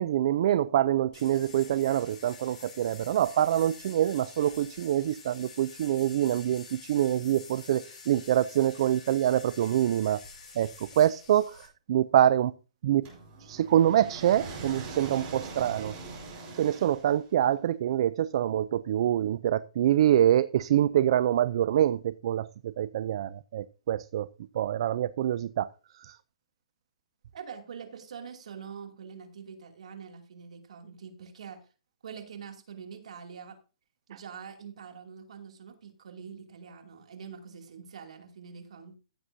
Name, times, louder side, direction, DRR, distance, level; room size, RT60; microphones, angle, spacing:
voice 1, 0.0-10.2 10.6-12.5 12.8-13.1 13.4-15.9 16.6-24.3 24.5-25.7 26.0-26.2, right 11 dB, 50° right, 0.4 m, -25 dB
sound 1, 1.1-11.7, left 5 dB, 30° left, 6.8 m, -48 dB
sound 2, 13.0-17.4, right 3 dB, 30° right, 4.7 m, -42 dB
voice 2, 27.3-31.6 32.0-33.6 34.1-39.0, right 6 dB, 70° right, 2.6 m, -44 dB
15.5 x 7.7 x 2.7 m
hypercardioid pair, 150°, 4 cm